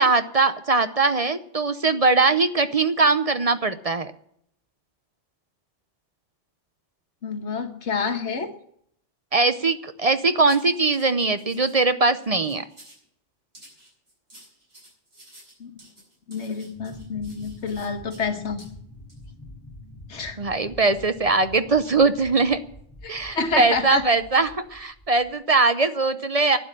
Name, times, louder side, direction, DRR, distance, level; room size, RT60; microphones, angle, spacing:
voice 1, 0.0-4.1 9.3-12.6 20.4-22.6 23.1-26.6, right 3 dB, 35° right, 11 dB, 0.7 m, -21 dB
voice 2, 7.2-8.5 15.6-15.7 16.3-18.6 20.1-20.4 23.0-24.0, left 4 dB, 65° left, 6 dB, 1.6 m, -28 dB
sound 1, 10.5-11.8 12.2-13.0 13.5-18.3 18.6-18.7 19.1-19.2, right 1 dB, 55° right, 7.6 m, -51 dB
sound 2, 16.8-25.3, left 1 dB, 10° left, 3.2 m, -46 dB
12.0 x 9.3 x 9.9 m, 0.69 s
omnidirectional pair, 1.3 m